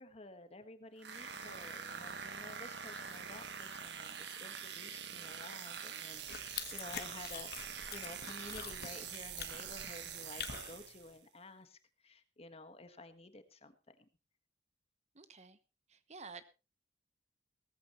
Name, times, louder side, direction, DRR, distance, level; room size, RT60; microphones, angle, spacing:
voice 1, 0.0-14.1, left 2 dB, 35° left, 9 dB, 1.6 m, -52 dB
sound 1, 1.0-11.2, right 7 dB, 80° right, 1.6 m, -45 dB
sound 2, 6.1-11.1, left 8 dB, 60° left, 1.4 m, -46 dB
voice 2, 15.1-15.6 15.9-16.4, right 4 dB, 40° right, 12 dB, 1.1 m, -51 dB
18.0 x 14.5 x 3.1 m, 0.31 s
head